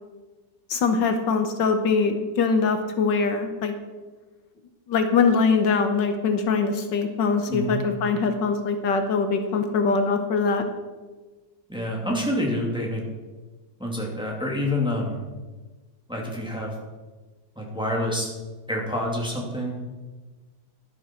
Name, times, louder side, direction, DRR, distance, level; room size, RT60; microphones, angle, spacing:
voice 1, 0.7-3.7 4.9-10.6, left 4 dB, 75° left, 7 dB, 1.6 m, -22 dB
voice 2, 7.5-7.8 11.7-13.0 13.8-15.2 16.1-16.7 17.6-18.3 18.7-19.7, left 1 dB, 5° right, -2 dB, 2.4 m, -27 dB
12.0 x 11.5 x 4.5 m, 1.3 s
omnidirectional pair, 2.0 m